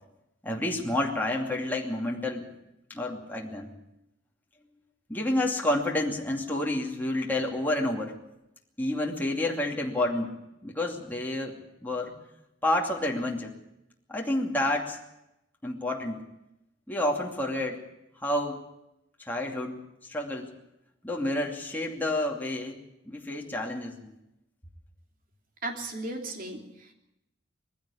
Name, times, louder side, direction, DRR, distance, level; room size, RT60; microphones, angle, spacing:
voice 1, 0.4-2.5 2.9-3.7 5.1-8.1 8.8-10.3 10.6-11.6 11.8-12.1 12.6-13.5 14.1-15.0 15.6-16.2 16.9-17.8 18.2-18.6 19.2-19.7 20.0-20.5 21.0-22.8 23.1-24.1, left 1 dB, 10° left, -1 dB, 2.6 m, -29 dB
voice 2, 25.6-26.9, right 2 dB, 50° right, 3 dB, 3.1 m, -36 dB
20.5 x 15.5 x 8.6 m, 0.87 s
head